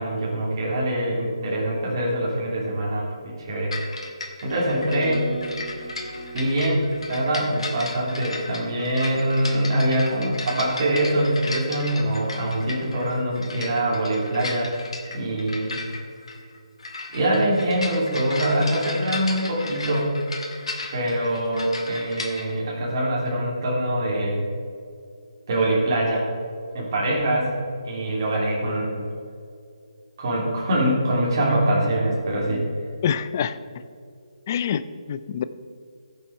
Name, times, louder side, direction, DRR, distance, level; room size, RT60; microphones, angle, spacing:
voice 1, 0.0-3.7 4.4-5.3 6.3-14.7 15.1-15.8 17.1-20.1 20.9-24.4 25.5-26.2 26.7-27.5 27.8-29.0 30.2-32.6, right 1 dB, 40° right, -4 dB, 3.1 m, -24 dB
sound 1, 3.7-22.5, left 3 dB, 65° left, 2.1 m, -35 dB
sound 2, 4.5-8.6, right 1 dB, 90° left, 2.9 m, -38 dB
voice 2, 33.0-33.6 34.5-35.4, left 8 dB, 30° left, 13 dB, 0.4 m, -26 dB
14.5 x 7.6 x 4.6 m, 2.4 s
hypercardioid pair, 160°, 3 cm